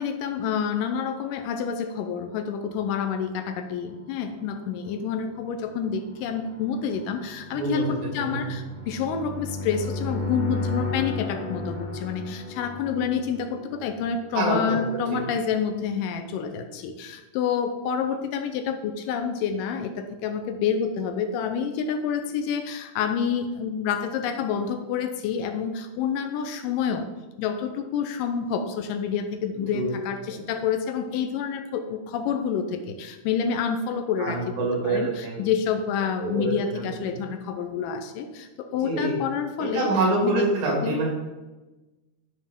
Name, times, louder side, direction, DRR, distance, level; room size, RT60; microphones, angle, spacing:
voice 1, 0.0-27.1 27.4-39.9 40.2-40.5 40.8-41.0, left 7 dB, 80° left, 6 dB, 2.0 m, -28 dB
sound 1, 3.7-14.4, left 2 dB, 25° left, 2.9 m, -35 dB
voice 2, 7.5-7.8 8.2-8.5 14.3-14.8 29.7-29.9 30.3-30.4 34.2-35.4 36.2-37.1 38.7-39.1 39.6-41.0, right 2 dB, 70° right, -2 dB, 3.9 m, -26 dB
11.0 x 4.7 x 3.6 m, 1.1 s
omnidirectional pair, 4.3 m